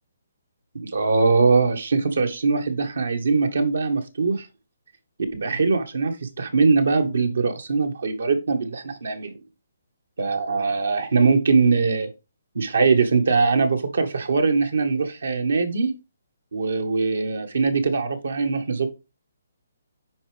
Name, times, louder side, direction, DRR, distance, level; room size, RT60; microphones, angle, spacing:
voice 1, 0.7-4.5 5.3-9.4 10.2-12.1 12.5-15.9 16.5-18.9, right 4 dB, 75° right, 6 dB, 1.6 m, -21 dB
9.0 x 4.9 x 3.5 m, 0.27 s
figure-of-eight pair, 140°, 0 cm